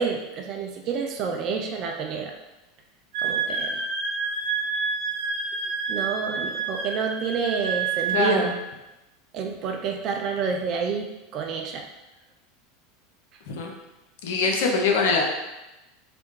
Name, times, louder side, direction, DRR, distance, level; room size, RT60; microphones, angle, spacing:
voice 1, 0.0-2.3 3.2-3.8 5.9-8.6 9.3-11.9, right 5 dB, 50° right, 3 dB, 0.3 m, -29 dB
Wind instrument woodwind instrument, 3.1-8.4, right 5 dB, 65° right, 1.0 m, -28 dB
voice 2, 8.1-8.5 13.5-13.7 14.2-15.2, left 4 dB, 70° left, 0 dB, 0.5 m, -23 dB
2.4 x 2.1 x 3.0 m, 1.0 s
hypercardioid pair, 90°, 0 cm